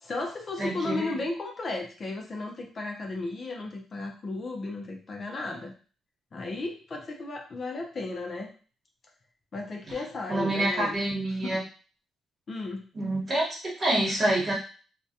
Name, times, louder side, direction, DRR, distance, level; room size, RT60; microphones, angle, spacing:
voice 1, 0.0-5.7 6.3-8.5 9.5-11.0 11.4-11.6 12.5-12.8, left 2 dB, 40° left, 1 dB, 0.5 m, -34 dB
voice 2, 0.6-1.1 9.9-10.0 10.3-11.6 12.9-14.5, right 1 dB, 35° right, -4 dB, 1.1 m, -27 dB
2.2 x 2.1 x 2.7 m, 0.39 s
cardioid pair, 90°, 0 cm